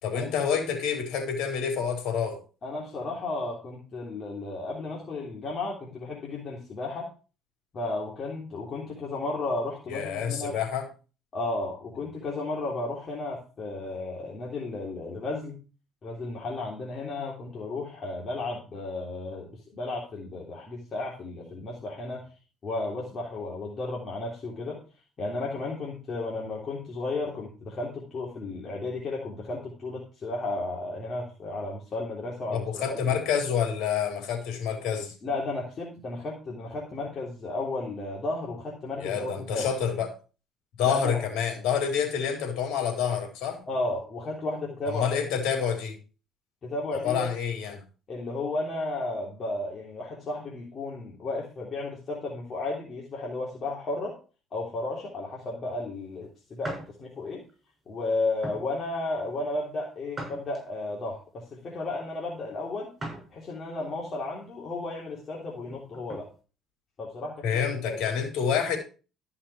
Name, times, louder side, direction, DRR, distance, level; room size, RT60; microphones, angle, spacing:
voice 1, 0.0-2.4 9.9-10.9 32.5-35.1 39.0-40.1 40.8-43.6 44.9-46.0 47.0-47.8 67.4-68.8, left 7 dB, 75° left, 3 dB, 4.0 m, -28 dB
voice 2, 2.6-7.1 7.7-10.6 11.3-15.6 16.0-22.3 22.6-24.8 25.2-33.1 35.2-39.8 40.8-41.2 43.7-45.0 46.6-47.3 48.1-54.2 54.5-57.4 57.9-62.9 63.3-66.3 67.0-68.0, left 2 dB, 40° left, -4 dB, 3.2 m, -33 dB
sound 1, 56.6-56.9 57.5-57.7 58.4-58.7 60.1-60.9 63.0-63.3 63.8-63.9 65.6-66.3, right 2 dB, 25° right, 6.8 m, -39 dB
13.5 x 5.9 x 4.8 m, 0.34 s
cardioid pair, 115°, 0 cm